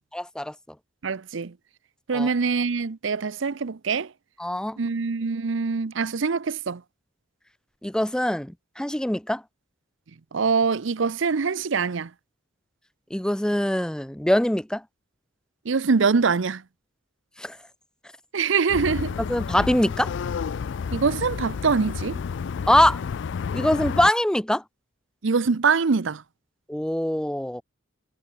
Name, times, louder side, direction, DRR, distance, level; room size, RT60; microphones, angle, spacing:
voice 1, 0.1-0.5 2.1-2.3 4.4-4.8 7.8-9.4 13.1-14.8 17.4-17.6 19.3-20.1 22.7-23.0 23.5-24.6 26.7-27.6, left 1 dB, 5° left, 0.5 m, -23 dB
voice 2, 1.0-1.5 2.1-4.1 4.8-6.8 10.3-12.1 15.6-16.6 18.3-19.2 20.9-22.2 25.2-26.2, right 5 dB, 70° right, 0.6 m, -24 dB
sound 1, 18.7-24.1, left 6 dB, 65° left, 0.4 m, -30 dB
head